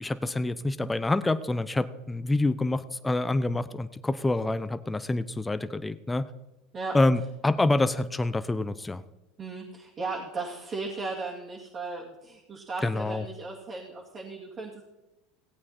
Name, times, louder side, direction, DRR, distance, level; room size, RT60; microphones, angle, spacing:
voice 1, 0.0-6.3 6.9-9.0 12.8-13.3, left 2 dB, 10° left, 12 dB, 0.7 m, -27 dB
voice 2, 9.4-14.8, right 3 dB, 35° right, -4 dB, 2.4 m, -36 dB
17.0 x 8.6 x 4.3 m, 0.98 s
hypercardioid pair, 90°, 0 cm